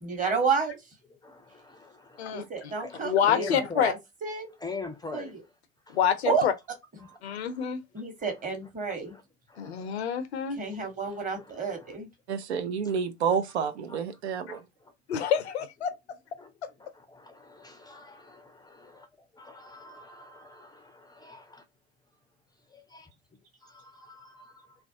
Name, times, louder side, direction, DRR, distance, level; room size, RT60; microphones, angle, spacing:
voice 1, 0.0-0.8 2.3-4.0 4.2-4.5 5.1-5.3 6.3-6.5 7.9-9.1 10.6-12.1, right 5 dB, 25° right, 1.1 m, -30 dB
voice 2, 1.1-2.5 2.8-3.0 3.3-3.9 4.6-5.3 5.9-6.0 7.0-7.7 8.2-8.3 8.9-9.2 9.5-10.0 11.0-12.0 12.8-13.0 13.9-14.0 14.5-14.9 16.4-16.5 16.8-21.6 22.7-23.1 23.6-24.8, left 4 dB, 10° left, 0.4 m, -44 dB
voice 3, 2.2-2.7 3.0-3.9 5.9-6.5 7.2-7.8 9.6-10.6 15.1-15.9, left 8 dB, 75° left, 0.5 m, -27 dB
voice 4, 12.3-14.6, right 6 dB, 80° right, 0.5 m, -29 dB
2.4 x 2.1 x 2.6 m
figure-of-eight pair, 70°, 33 cm